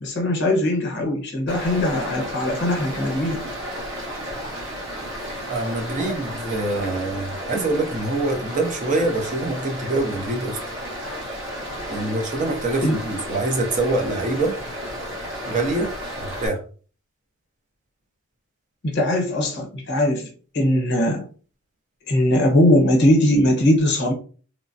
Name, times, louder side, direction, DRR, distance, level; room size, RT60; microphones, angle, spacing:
voice 1, 0.0-3.4 12.8-13.0 18.8-21.2 22.1-24.1, left 1 dB, 50° left, 0.8 m, -20 dB
Stream, 1.5-16.5, equal, 55° right, 0.9 m, -33 dB
voice 2, 5.5-10.6 11.9-14.6 15.5-16.6, right 2 dB, 35° right, 0.5 m, -25 dB
3.1 x 2.0 x 2.6 m
head